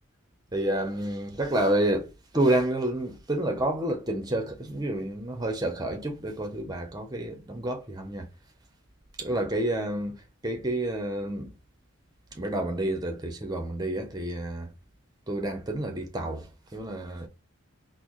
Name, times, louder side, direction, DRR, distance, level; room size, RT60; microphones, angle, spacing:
voice 1, 0.5-8.3 9.2-11.5 12.3-14.7 15.3-17.3, right 1 dB, 20° right, 0.6 m, -29 dB
4.0 x 2.0 x 3.0 m
head